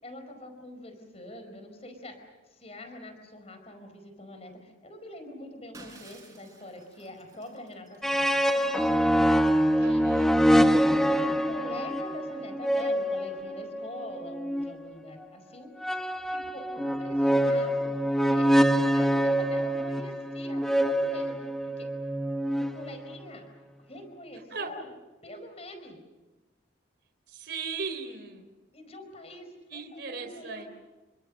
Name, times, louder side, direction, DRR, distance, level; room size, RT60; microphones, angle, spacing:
voice 1, 0.0-9.1 9.8-10.1 11.1-15.7 16.3-18.5 18.9-21.9 22.6-23.5 23.9-24.9 25.2-26.0 28.7-30.7, left 1 dB, 35° left, 7 dB, 4.9 m, -44 dB
Shatter, 5.7-8.4, right 2 dB, 15° right, 5.6 m, -51 dB
sound 1, 8.0-14.7 15.8-23.2, equal, ahead, 1.1 m, -25 dB
voice 2, 9.8-10.3 24.5-24.7 27.3-28.5 29.7-30.7, right 4 dB, 60° right, 5 dB, 3.8 m, -37 dB
29.0 x 24.5 x 6.6 m, 1.1 s
head